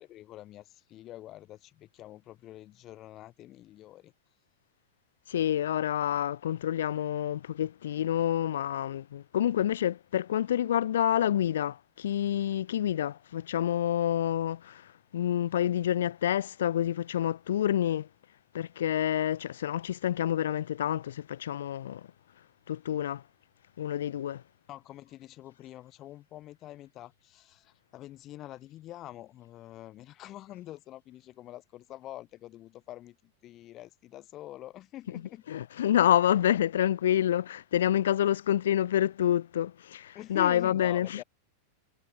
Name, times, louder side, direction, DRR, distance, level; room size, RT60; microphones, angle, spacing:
voice 1, 0.0-4.1 24.7-35.4 40.1-41.2, left 14 dB, 35° left, 1.7 m, -46 dB
voice 2, 5.3-18.1 18.5-22.1 22.7-23.2 23.8-24.4 35.5-41.2, left 11 dB, 60° left, 0.5 m, -28 dB
figure-of-eight pair, 90°, 0 cm